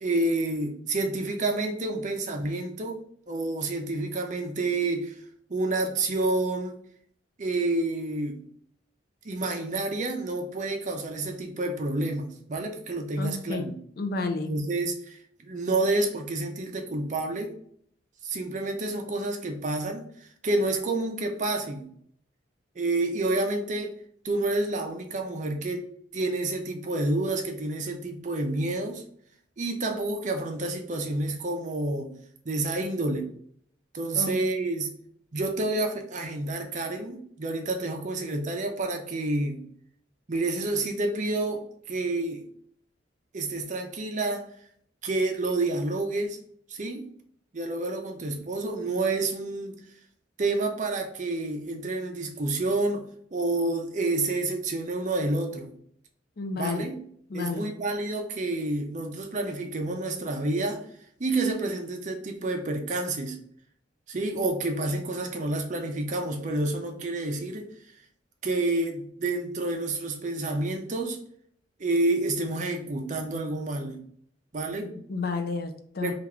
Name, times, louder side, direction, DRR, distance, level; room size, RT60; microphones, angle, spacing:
voice 1, 0.0-3.0 3.3-5.1 5.5-6.7 7.4-8.4 9.2-13.7 14.5-17.5 18.2-21.9 22.8-23.9 24.2-25.9 26.1-29.0 29.6-32.1 32.5-33.3 33.9-34.9 35.3-39.6 40.3-42.4 43.3-44.5 45.0-46.4 46.7-47.1 47.5-49.7 50.4-53.0 53.3-55.7 56.6-56.9 57.3-60.8 61.2-63.4 64.1-67.6 68.4-71.2 71.8-74.0 74.5-74.9 76.0-76.1, right 2 dB, 40° right, 4 dB, 0.5 m, -29 dB
voice 2, 13.2-14.5 34.1-34.4 56.4-56.9 57.3-57.7 74.8-76.1, left 3 dB, 55° left, 7 dB, 0.5 m, -31 dB
3.4 x 2.4 x 3.0 m, 0.64 s
head